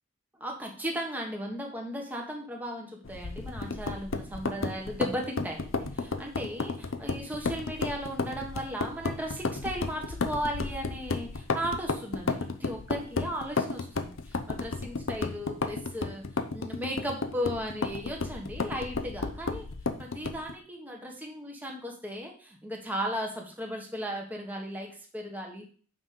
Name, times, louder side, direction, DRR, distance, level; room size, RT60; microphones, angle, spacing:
voice 1, 0.4-16.2 16.5-19.7 20.0-25.7, equal, 10° right, 0 dB, 1.4 m, -36 dB
sound 1, 3.0-20.5, left 3 dB, 70° left, 0.8 m, -33 dB
6.0 x 5.4 x 6.8 m, 0.42 s
head